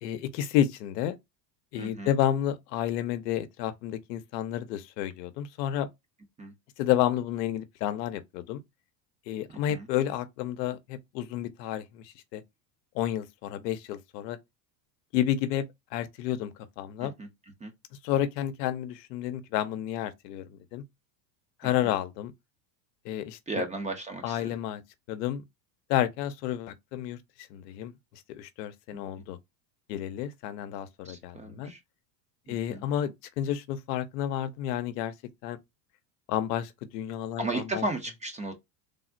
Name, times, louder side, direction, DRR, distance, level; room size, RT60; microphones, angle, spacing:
voice 1, 0.0-1.2 1.7-5.9 6.8-8.6 9.3-12.4 12.9-14.4 15.1-17.2 18.0-20.8 21.6-22.3 23.0-23.6 24.2-24.8 25.1-25.4 25.9-29.4 29.9-31.7 32.5-35.1 35.4-35.6 36.3-37.8, left 11 dB, 75° left, 0.7 m, -31 dB
voice 2, 1.8-2.1 6.4-6.5 9.7-9.9 17.0-17.3 17.6-17.7 21.8-21.9 23.5-24.4 31.0-31.8 32.5-32.8 37.4-38.5, right 2 dB, 15° right, 0.5 m, -34 dB
3.5 x 2.0 x 2.4 m
supercardioid pair, 120°, 50 cm